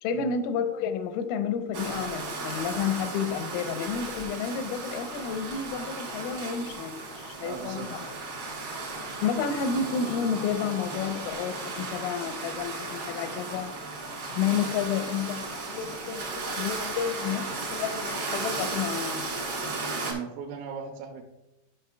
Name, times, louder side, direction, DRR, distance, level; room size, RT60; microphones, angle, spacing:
voice 1, 0.0-8.0 9.2-13.7 14.3-19.3, left 7 dB, 85° left, 9 dB, 3.2 m, -31 dB
sound 1, 1.7-20.1, right 3 dB, 65° right, 1.4 m, -35 dB
voice 2, 7.4-7.9 19.9-21.2, right 6 dB, 85° right, 1 dB, 3.3 m, -38 dB
13.0 x 5.7 x 2.2 m, 0.92 s
omnidirectional pair, 5.9 m